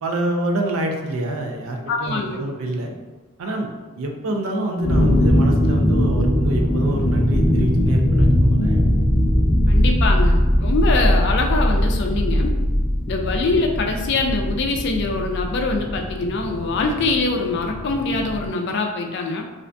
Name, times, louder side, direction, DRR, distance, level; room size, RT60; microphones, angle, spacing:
voice 1, 0.0-2.9 3.4-3.7 4.0-8.8, right 1 dB, 75° right, 3 dB, 0.4 m, -26 dB
voice 2, 1.9-2.4 9.7-12.5 13.1-19.5, left 3 dB, 55° left, 3 dB, 0.3 m, -23 dB
sound 1, 4.8-18.5, equal, 5° right, 0.7 m, -20 dB
2.4 x 2.2 x 2.5 m, 1.3 s
head